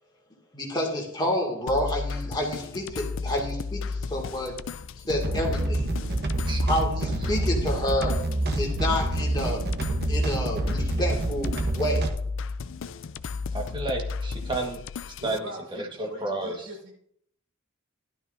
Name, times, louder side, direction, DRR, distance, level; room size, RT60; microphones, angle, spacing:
voice 1, 0.5-4.5 5.1-5.9 6.6-8.2 8.6-9.6 10.1-12.0, left 1 dB, 20° left, -1 dB, 2.3 m, -29 dB
sound 1, 1.7-15.4, left 4 dB, 65° left, 0.4 m, -34 dB
sound 2, 5.0-12.1, right 1 dB, 50° right, 1.0 m, -27 dB
voice 2, 13.5-14.8 15.0-16.7, right 2 dB, 25° right, 2 dB, 1.5 m, -32 dB
voice 3, 15.2-16.9, right 1 dB, 80° right, -1 dB, 5.2 m, -40 dB
12.5 x 12.0 x 2.7 m, 0.68 s
head